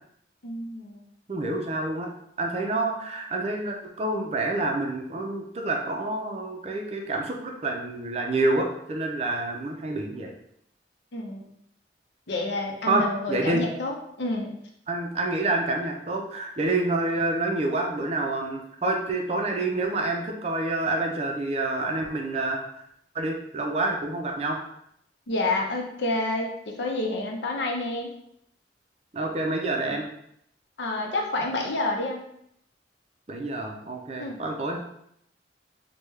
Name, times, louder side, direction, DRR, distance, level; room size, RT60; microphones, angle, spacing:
voice 1, 0.4-1.0 11.1-11.4 12.3-14.5 25.3-26.5 26.8-28.1 30.8-32.2 34.2-34.4, left 2 dB, 80° left, 0 dB, 0.6 m, -29 dB
voice 2, 1.3-2.1 2.4-10.3 12.9-13.6 14.9-22.6 23.1-24.6 29.1-30.1 33.3-34.8, right 2 dB, 35° right, 1 dB, 0.4 m, -28 dB
3.4 x 2.2 x 3.1 m, 0.74 s
head